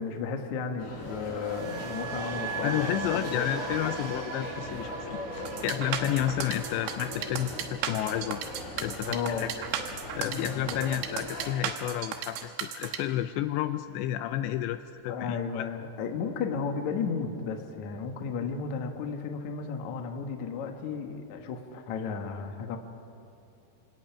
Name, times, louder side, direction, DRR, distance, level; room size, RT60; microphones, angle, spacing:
voice 1, 0.0-3.5 9.1-9.5 10.3-10.8 15.1-22.8, left 5 dB, 60° left, 4 dB, 2.0 m, -34 dB
sound 1, 0.8-11.5, left 1 dB, 45° left, 5.0 m, -40 dB
sound 2, 1.0-9.1 9.4-9.7, right 5 dB, 60° right, 2.4 m, -40 dB
voice 2, 2.6-8.4 8.8-9.5 10.1-15.7, left 12 dB, 80° left, 10 dB, 2.7 m, -31 dB
sound 3, 5.5-13.0, right 8 dB, 85° right, 3.6 m, -35 dB
28.5 x 17.5 x 5.9 m, 2.9 s
omnidirectional pair, 5.2 m